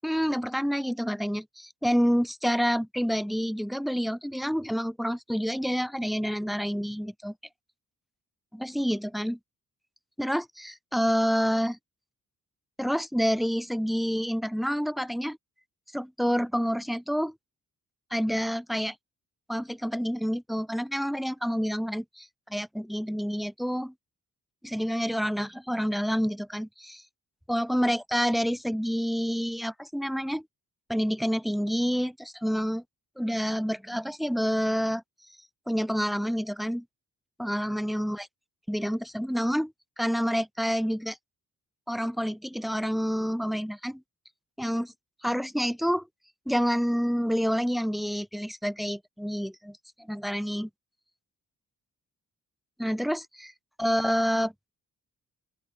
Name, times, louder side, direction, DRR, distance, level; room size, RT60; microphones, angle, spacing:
voice 1, 0.0-7.3 8.5-9.4 10.2-11.8 12.8-15.4 15.9-17.3 18.1-19.0 19.5-23.9 24.6-27.0 27.5-30.5 30.9-32.8 33.2-35.0 35.7-36.8 37.4-38.3 38.7-41.2 41.9-44.0 44.6-44.9 45.2-46.1 46.5-50.7 52.8-53.5 53.8-54.5, equal, ahead, 5.1 m, -28 dB
open air
cardioid pair, 70°, 35 cm